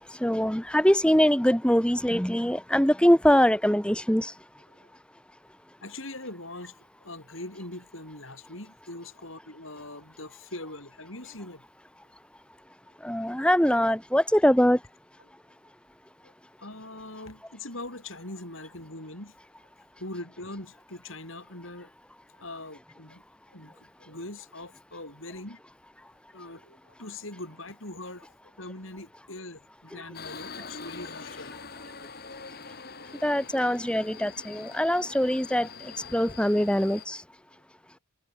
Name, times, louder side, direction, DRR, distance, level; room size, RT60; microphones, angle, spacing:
voice 1, 0.2-4.3 13.0-14.8 33.2-35.7 36.1-37.2, equal, 5° left, 1.6 m, -23 dB
voice 2, 5.8-6.7 7.0-11.6 16.2-16.3 16.6-19.4 20.0-21.9 22.4-23.2 23.5-25.6 26.3-28.3 28.6-31.6, left 2 dB, 65° left, 7.2 m, -42 dB
Subway metro underground, 30.1-37.1, left 5 dB, 45° left, 2.9 m, -44 dB
head